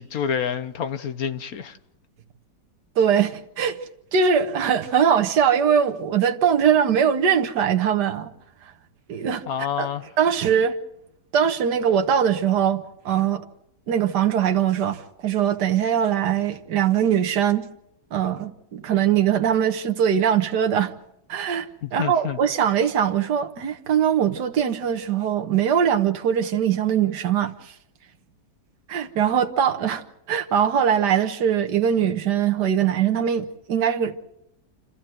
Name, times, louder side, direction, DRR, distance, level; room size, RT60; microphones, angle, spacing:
voice 1, 0.0-1.8 9.5-10.1 21.8-22.4, left 8 dB, 60° left, 1.4 m, -28 dB
voice 2, 3.0-3.8 4.1-8.3 9.1-9.4 9.8-9.9 10.2-10.8 11.3-13.4 13.9-17.6 18.1-20.9 21.3-27.7 28.9-30.0 30.3-34.2, right 8 dB, 75° right, 1.8 m, -21 dB
29.0 x 13.5 x 7.7 m
omnidirectional pair, 1.8 m